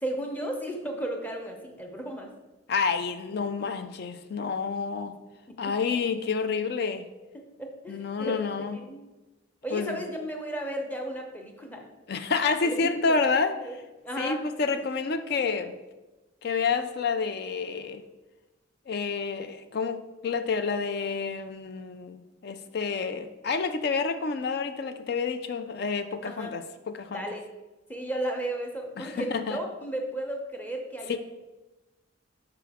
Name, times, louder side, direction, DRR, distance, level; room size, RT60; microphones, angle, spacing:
voice 1, 0.0-2.3 5.5-5.7 7.6-8.5 8.7-9.0 9.6-11.9 12.6-13.2 13.6-13.8 14.0-14.4 14.7-14.9 26.2-26.5 27.0-27.5 27.9-31.2, right 1 dB, 10° left, 0.7 m, -34 dB
voice 2, 2.7-5.2 5.6-7.1 7.9-8.8 9.7-10.0 12.1-13.6 14.2-15.8 16.4-18.0 18.9-27.2 29.0-29.6 31.1-31.2, left 5 dB, 50° left, 0.4 m, -29 dB
6.0 x 4.7 x 3.5 m
head